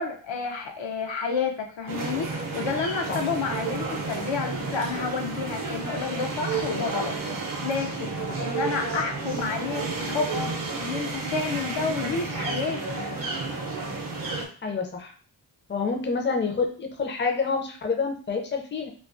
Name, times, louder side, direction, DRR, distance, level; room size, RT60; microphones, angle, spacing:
voice 1, 0.0-7.1 7.6-13.1, left 5 dB, 75° left, 3 dB, 0.5 m, -30 dB
sound 1, 1.9-14.5, right 3 dB, 50° right, 0.5 m, -31 dB
voice 2, 14.6-15.1 15.7-18.9, left 4 dB, 25° left, 3 dB, 0.4 m, -28 dB
2.3 x 2.2 x 2.4 m, 0.42 s
wide cardioid pair, 45°, 45 cm